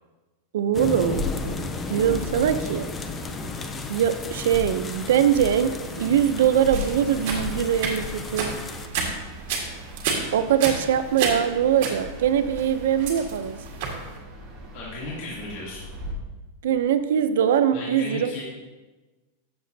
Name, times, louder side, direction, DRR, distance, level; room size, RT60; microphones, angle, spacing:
voice 1, 0.5-1.2 1.9-2.9 3.9-8.6 10.3-13.6 16.6-18.4, right 9 dB, 70° right, 11 dB, 0.6 m, -22 dB
sound 1, 0.7-8.9, left 3 dB, 10° left, 0.4 m, -34 dB
sound 2, 1.1-16.1, left 1 dB, 25° right, 1.5 m, -38 dB
sound 3, 6.7-14.1, right 5 dB, 50° right, 1.7 m, -30 dB
voice 2, 14.7-15.8 17.7-18.4, left 2 dB, 45° left, -6 dB, 2.7 m, -35 dB
13.0 x 7.1 x 2.8 m, 1.2 s
supercardioid pair, 180°, 0 cm